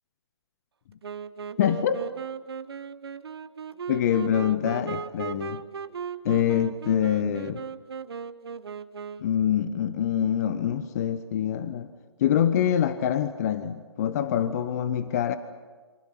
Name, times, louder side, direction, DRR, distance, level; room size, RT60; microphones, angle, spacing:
Wind instrument woodwind instrument, 1.0-9.4, right 6 dB, 60° right, 1.1 m, -37 dB
voice 1, 1.6-2.0 3.9-5.6 6.2-7.6 9.2-11.9 12.2-15.4, left 9 dB, 35° left, 12 dB, 1.0 m, -25 dB
28.5 x 25.0 x 5.9 m, 1.4 s
figure-of-eight pair, 140°, 15 cm